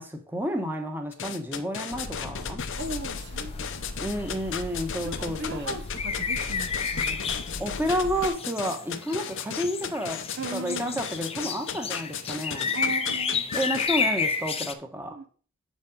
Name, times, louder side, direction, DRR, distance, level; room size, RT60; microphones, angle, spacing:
voice 1, 0.0-2.6 4.0-5.7 7.6-10.2 10.5-12.7 13.5-15.2, equal, 10° right, 1.3 m, -30 dB
sound 1, 1.1-13.9, left 7 dB, 60° left, 0.8 m, -35 dB
sound 2, 1.9-8.3, left 2 dB, 80° left, 1.1 m, -39 dB
sound 3, 2.7-14.7, left 5 dB, 25° left, 0.7 m, -32 dB
voice 2, 2.8-4.3 5.0-7.7 10.4-11.1 12.7-13.4 15.1-15.2, right 2 dB, 55° right, 0.9 m, -38 dB
7.6 x 5.3 x 5.4 m
head